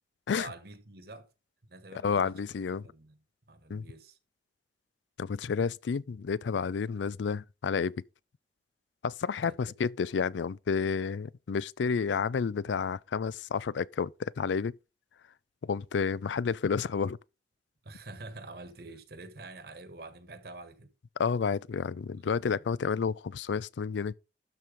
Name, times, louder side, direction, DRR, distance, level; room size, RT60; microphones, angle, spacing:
voice 1, 0.3-1.3 1.7-2.4 2.7-3.2 3.5-4.2 9.4-9.5 17.8-20.9 22.2-22.6, right 2 dB, 60° right, 1.5 m, -47 dB
voice 2, 2.0-2.8 3.7-3.8 5.2-8.0 9.0-14.7 15.6-17.2 21.2-24.1, left 6 dB, 85° left, 0.4 m, -30 dB
12.5 x 4.7 x 5.0 m
head